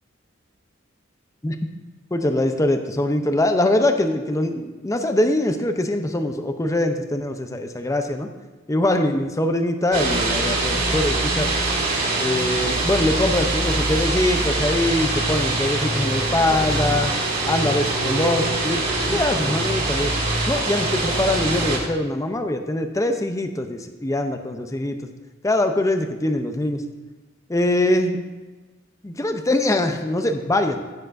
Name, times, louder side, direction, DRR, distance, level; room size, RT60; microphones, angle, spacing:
voice 1, 2.1-8.3 8.7-11.5 12.2-17.1 17.4-18.8 19.1-20.1 20.5-25.0 25.4-26.8 27.5-28.2 29.0-30.8, left 1 dB, 15° left, 6 dB, 0.6 m, -23 dB
sound 1, 9.9-21.8, right 2 dB, 45° right, 2.3 m, -23 dB
16.0 x 7.1 x 2.6 m, 1.2 s
head